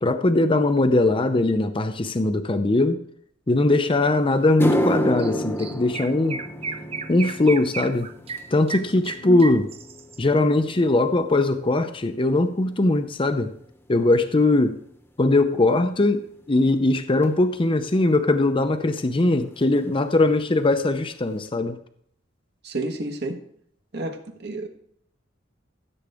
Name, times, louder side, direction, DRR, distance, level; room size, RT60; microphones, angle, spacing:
voice 1, 0.0-3.0 3.5-6.4 7.1-8.1 8.5-9.7 10.2-13.5 13.9-14.8 15.2-21.8, left 2 dB, 25° left, 9 dB, 0.6 m, -20 dB
sound 1, 3.9-4.0 4.4-12.9 13.2-13.6 14.4-14.5 17.2-17.3 19.0-19.1 19.2-19.5 19.8-20.3 20.7-20.8 21.3-21.4, equal, 10° left, 1.0 m, -31 dB
Chirp tweet, 5.2-5.3 5.6-10.2, right 5 dB, 30° right, 0.7 m, -34 dB
voice 2, 22.6-23.4 23.9-24.7, right 2 dB, 60° right, 4 dB, 1.4 m, -30 dB
15.0 x 7.9 x 3.5 m, 0.66 s
head